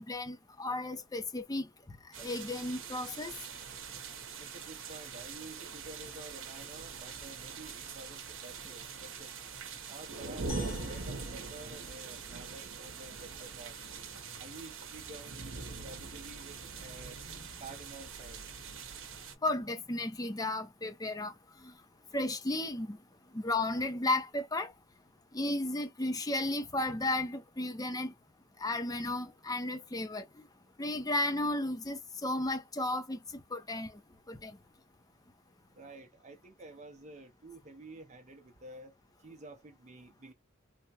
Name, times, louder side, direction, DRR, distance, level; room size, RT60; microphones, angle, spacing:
voice 1, 0.0-3.3 17.4-17.5 19.4-21.3 21.6-21.7 22.1-23.0 23.3-24.7 25.3-28.1 28.6-30.3 30.8-33.9 34.3-34.6, left 2 dB, 15° left, 0.6 m, -34 dB
sound 1, 2.1-19.3, right 5 dB, 65° right, 0.8 m, -43 dB
voice 2, 4.4-9.3 9.9-13.7 14.4-17.2 17.6-18.5 35.7-38.9 39.2-40.3, right 2 dB, 35° right, 0.6 m, -50 dB
sound 2, 10.5-12.9, left 3 dB, 45° left, 1.3 m, -50 dB
3.4 x 2.1 x 2.8 m
head